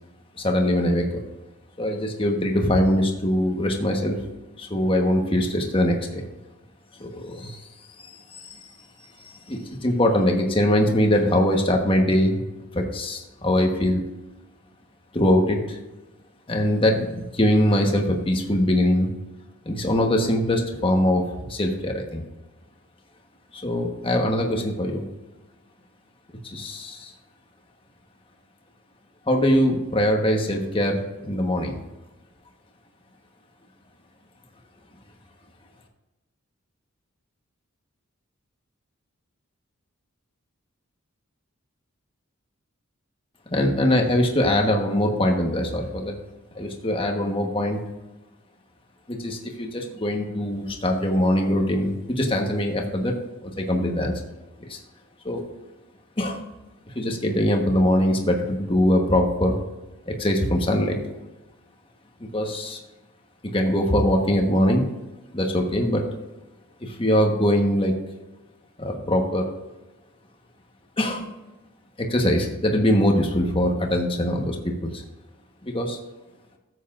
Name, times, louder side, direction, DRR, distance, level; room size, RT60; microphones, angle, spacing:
voice 1, 0.4-1.2 1.8-4.2 4.6-6.2 7.0-7.7 8.0-8.7 9.2-12.4 12.7-14.0 15.1-15.8 16.5-19.1 19.6-22.2 23.5-25.0 26.4-27.1 29.3-31.8 43.5-46.2 46.5-47.8 49.1-53.2 53.4-54.1 54.7-54.8 55.2-55.4 56.2-56.4 56.9-59.5 60.1-61.0 62.2-62.8 63.4-64.8 65.3-66.0 66.8-67.9 68.8-69.5 71.0-71.3 72.0-75.0 75.6-76.0, left 1 dB, 25° left, 2 dB, 1.2 m, -22 dB
13.5 x 8.2 x 2.5 m, 1.1 s
head